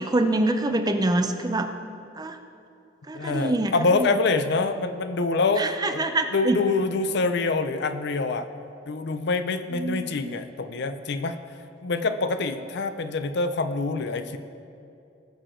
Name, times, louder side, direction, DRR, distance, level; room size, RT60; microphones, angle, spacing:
voice 1, 0.0-1.7 2.2-2.4 3.1-4.1 5.6-6.6 9.7-10.4, right 2 dB, 20° right, 7 dB, 0.6 m, -25 dB
voice 2, 3.1-8.5 8.9-11.4 11.8-14.4, left 3 dB, 65° left, 9 dB, 0.6 m, -26 dB
19.0 x 6.6 x 3.8 m, 2.6 s
head